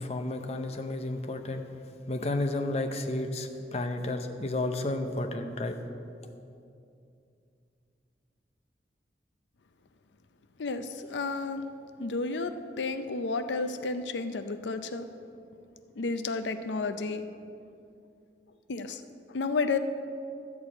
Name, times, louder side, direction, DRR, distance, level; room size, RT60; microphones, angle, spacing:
voice 1, 0.0-1.7 2.1-5.8, left 2 dB, 35° left, 6 dB, 0.6 m, -32 dB
voice 2, 10.6-11.6 12.0-15.1 16.0-17.3 18.7-19.0 19.3-19.8, left 3 dB, 90° left, 9 dB, 0.5 m, -31 dB
12.5 x 4.7 x 8.4 m, 2.6 s
head